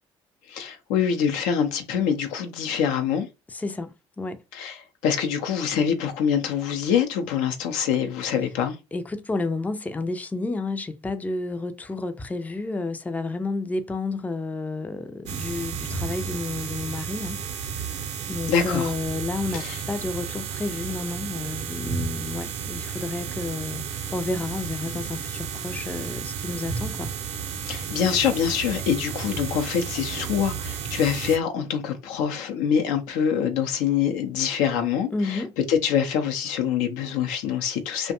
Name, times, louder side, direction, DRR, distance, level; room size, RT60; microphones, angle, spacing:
voice 1, 0.5-3.3 4.5-8.8 18.5-18.9 19.5-19.8 27.7-38.1, left 8 dB, 75° left, 0.6 m, -25 dB
voice 2, 3.5-4.4 8.9-17.4 18.3-27.1 35.1-35.5, left 3 dB, 10° left, 0.4 m, -31 dB
sound 1, 15.2-31.4, right 6 dB, 65° right, 0.6 m, -32 dB
2.5 x 2.1 x 2.8 m
hypercardioid pair, 60°, 14 cm